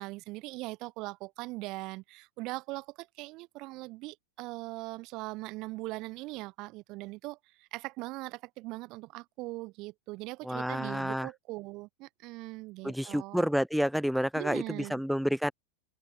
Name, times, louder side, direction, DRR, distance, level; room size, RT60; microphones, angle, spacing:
voice 1, 0.0-13.5 14.3-15.0, right 22 dB, 40° right, 0.9 m, -40 dB
voice 2, 10.4-11.3 12.8-15.5, equal, ahead, 0.4 m, -29 dB
figure-of-eight pair, 90°, 0 cm